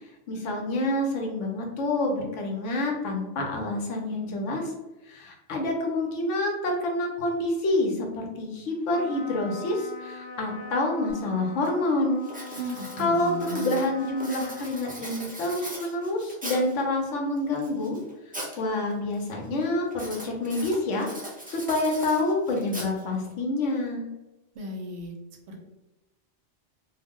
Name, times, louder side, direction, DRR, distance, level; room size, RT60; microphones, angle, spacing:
voice 1, 0.3-4.7 5.1-12.3 13.0-18.0 18.6-21.1 21.5-24.1, left 2 dB, 90° left, 1 dB, 1.0 m, -27 dB
Trumpet, 8.8-15.7, left 3 dB, 55° left, 0.6 m, -42 dB
Writing, 11.1-11.2 11.6-11.9 12.2-16.8 17.4-18.6 18.9-19.3 19.9-23.3, right 1 dB, 15° right, 0.3 m, -40 dB
voice 2, 12.6-13.8 24.5-25.1 25.5-25.6, right 1 dB, 65° right, 2 dB, 0.8 m, -35 dB
2.5 x 2.0 x 3.5 m, 1.0 s
omnidirectional pair, 1.2 m